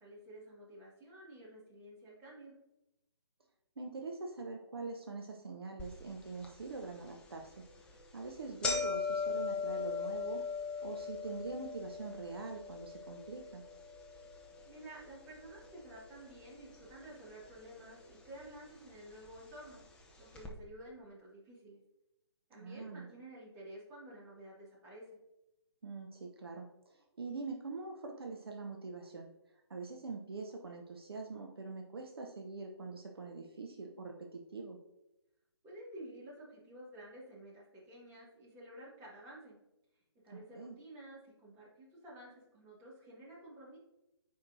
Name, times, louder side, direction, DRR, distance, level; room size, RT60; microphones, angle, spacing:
voice 1, 0.0-2.5 14.6-19.8 20.2-21.8 22.5-25.0 35.6-39.6 40.2-43.8, right 1 dB, 15° right, -7 dB, 2.5 m, -52 dB
voice 2, 3.8-7.7 8.1-10.5 10.8-13.6 22.5-23.1 25.8-29.3 29.7-34.8 40.3-40.8, right 3 dB, 60° right, 2 dB, 0.8 m, -44 dB
sound 1, 5.8-5.9 6.4-6.5 7.4-7.6 7.9-16.5 16.7-17.5 18.3-18.4 19.3-19.4 19.7-19.8 20.3-20.5, left 5 dB, 5° left, 0.5 m, -39 dB
9.2 x 4.7 x 2.7 m, 0.91 s
figure-of-eight pair, 140°, 14 cm